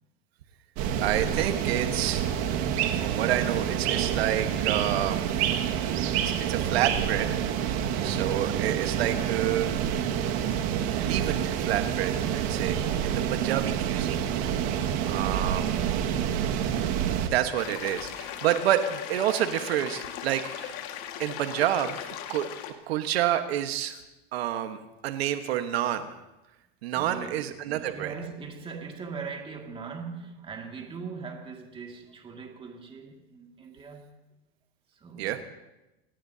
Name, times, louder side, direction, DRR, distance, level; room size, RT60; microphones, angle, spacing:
sound 1, 0.8-17.3, right 9 dB, 50° right, 1.9 m, -28 dB
voice 1, 1.0-2.2 3.0-5.6 6.2-7.4 8.0-9.9 11.0-14.3 15.0-15.7 17.3-20.8 21.2-22.0 22.3-22.5 22.9-24.0 24.3-26.1 26.8-28.1 35.2-35.4, right 11 dB, 75° right, 1.4 m, -29 dB
sound 2, 17.6-22.7, left 10 dB, 50° left, 1.9 m, -38 dB
voice 2, 26.9-34.1 34.9-35.4, right 5 dB, 15° right, 2.2 m, -41 dB
27.5 x 18.5 x 2.8 m
supercardioid pair, 140°, 31 cm